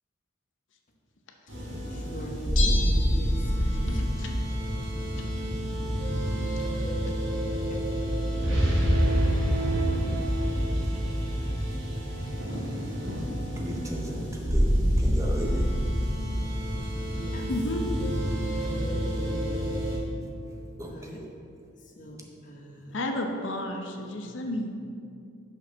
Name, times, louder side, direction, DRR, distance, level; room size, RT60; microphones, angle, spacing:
sound 1, 1.5-20.0, equal, 60° right, 1.9 m, -27 dB
voice 1, 2.1-2.8 3.1-4.1 9.5-10.2 17.1-17.4 18.0-18.1 18.7-19.5 20.9-21.1 22.0-22.2 22.5-22.9, equal, 40° left, 1 dB, 0.9 m, -41 dB
Bell, 2.6-4.0 4.2-4.3, left 4 dB, 90° left, 1.0 m, -33 dB
voice 2, 3.7-4.3 17.5-17.9 22.9-24.7, left 1 dB, 60° left, 3 dB, 0.7 m, -32 dB
voice 3, 13.1-15.7 20.8-21.3 24.2-24.5, equal, 15° right, 0 dB, 0.6 m, -38 dB
6.0 x 5.7 x 5.8 m, 2.5 s
head